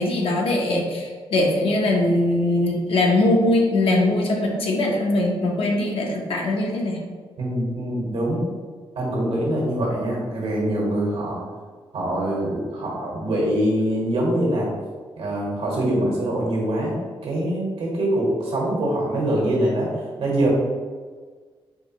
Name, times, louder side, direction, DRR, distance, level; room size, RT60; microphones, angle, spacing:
voice 1, 0.0-7.0, left 1 dB, 70° left, 0 dB, 0.8 m, -21 dB
voice 2, 7.4-8.4 8.9-11.4 11.9-14.7 15.2-19.9 20.2-20.5, right 1 dB, 80° right, -3 dB, 1.4 m, -24 dB
4.7 x 2.7 x 3.0 m, 1.5 s
cardioid pair, 85°, 10 cm